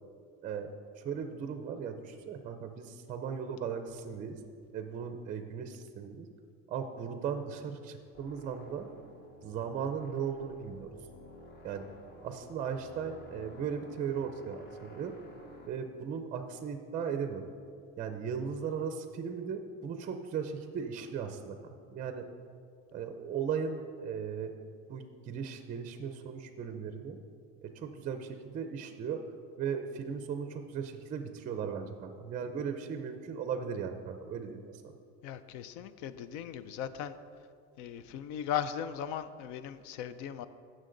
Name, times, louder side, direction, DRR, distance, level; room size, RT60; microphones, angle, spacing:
voice 1, 0.4-4.4 4.7-6.3 6.7-8.9 9.4-10.9 11.6-11.8 12.2-15.1 15.6-17.4 18.0-22.3 22.9-24.5 24.9-27.2 27.6-29.2 29.6-34.7, right 7 dB, 25° right, 7 dB, 0.5 m, -37 dB
sound 1, 8.1-15.7, left 1 dB, 35° left, 1.1 m, -53 dB
voice 2, 35.2-37.2 37.8-40.5, left 9 dB, 70° left, 13 dB, 0.5 m, -38 dB
16.0 x 6.4 x 3.8 m, 2.3 s
cardioid pair, 175°, 30 cm